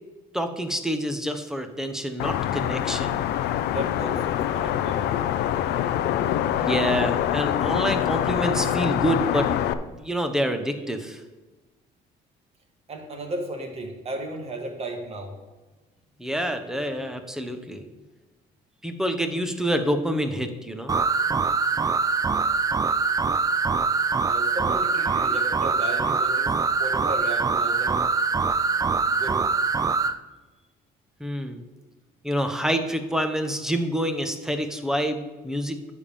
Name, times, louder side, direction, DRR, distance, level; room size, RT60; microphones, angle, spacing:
voice 1, 0.3-3.2 6.6-9.5 9.9-11.2 16.2-17.8 18.8-20.9 31.2-31.6 32.2-35.9, equal, 5° right, 7 dB, 1.0 m, -27 dB
sound 1, 2.2-9.7, left 11 dB, 80° left, 0.5 m, -25 dB
voice 2, 3.7-5.2 12.9-15.4 24.2-28.0 29.1-29.4, right 2 dB, 35° right, 3 dB, 1.8 m, -35 dB
sound 2, 20.9-30.2, right 4 dB, 20° right, 0.4 m, -23 dB
9.7 x 3.7 x 6.9 m, 1.2 s
cardioid pair, 110°, 17 cm